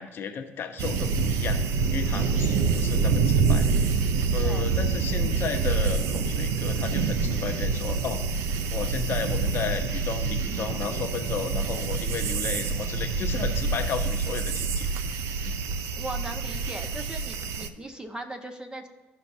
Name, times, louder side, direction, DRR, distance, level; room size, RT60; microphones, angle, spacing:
voice 1, 0.0-4.0 4.3-8.2 8.7-14.9 15.4-15.6, left 6 dB, 55° left, 6 dB, 0.9 m, -34 dB
sound 1, 0.8-17.7, right 5 dB, 75° right, 0.6 m, -26 dB
voice 2, 16.0-18.9, right 1 dB, 20° right, 5 dB, 1.2 m, -38 dB
15.0 x 5.7 x 2.7 m, 1.2 s
supercardioid pair, 85°, 5 cm